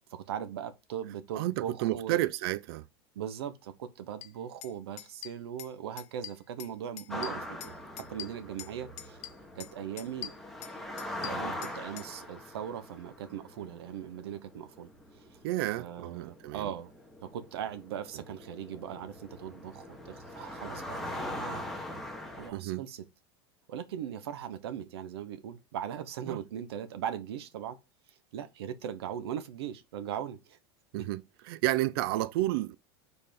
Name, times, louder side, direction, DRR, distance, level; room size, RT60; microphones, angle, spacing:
voice 1, 0.1-2.2 3.1-7.7 8.1-9.2 9.5-10.3 11.2-14.9 15.2-15.4 15.8-16.9 17.2-21.7 22.4-23.1 23.7-27.8 28.3-30.6 31.0-31.1, right 9 dB, 85° right, 1.1 m, -39 dB
voice 2, 1.4-2.8 15.4-16.7 22.5-22.8 26.3-26.4 30.9-31.2 31.5-32.8, right 16 dB, 70° right, 0.5 m, -31 dB
sound 1, 4.2-4.3 4.6-4.7 5.0-5.7 6.0-6.7 7.0-8.7 9.0-9.7 10.0-12.1, left 13 dB, 50° left, 1.0 m, -43 dB
sound 2, 7.1-22.5, left 1 dB, ahead, 1.4 m, -42 dB
5.5 x 4.2 x 5.2 m
supercardioid pair, 120°, 13 cm